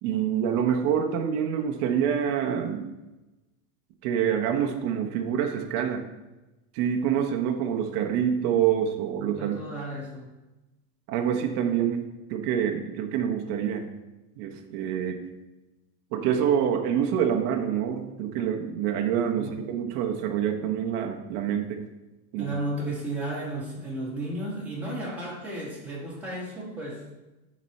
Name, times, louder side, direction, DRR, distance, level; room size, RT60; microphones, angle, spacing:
voice 1, 0.0-2.9 4.0-6.0 6.7-9.6 11.1-13.9 14.4-15.2 16.1-21.8 22.3-22.5, right 8 dB, 35° right, 3 dB, 0.7 m, -26 dB
voice 2, 9.2-10.3 19.3-19.5 22.4-27.0, right 1 dB, 5° right, -7 dB, 2.1 m, -34 dB
9.8 x 4.2 x 4.3 m, 1.0 s
supercardioid pair, 155°, 44 cm